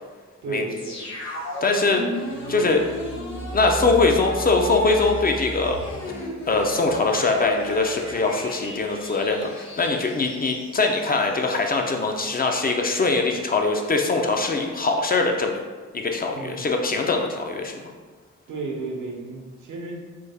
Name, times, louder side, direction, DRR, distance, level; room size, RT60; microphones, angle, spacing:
voice 1, 0.4-1.0 16.3-16.7 18.5-20.0, right 3 dB, 80° right, 0 dB, 0.7 m, -33 dB
sound 1, 0.8-11.6 11.9-12.0, equal, 65° left, 0.9 m, -34 dB
voice 2, 1.6-2.0 2.5-2.8 3.5-5.8 6.2-15.6 15.9-17.7, left 3 dB, 30° left, 2 dB, 0.4 m, -22 dB
3.4 x 2.1 x 3.4 m, 1.4 s
cardioid pair, 65°, 30 cm